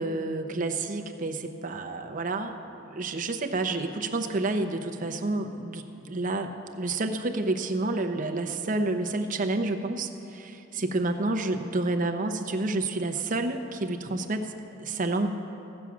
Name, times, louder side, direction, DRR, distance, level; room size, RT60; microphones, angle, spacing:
voice 1, 0.0-14.5 14.8-15.3, right 2 dB, 45° right, 5 dB, 0.7 m, -29 dB
15.5 x 7.3 x 6.0 m, 2.9 s
head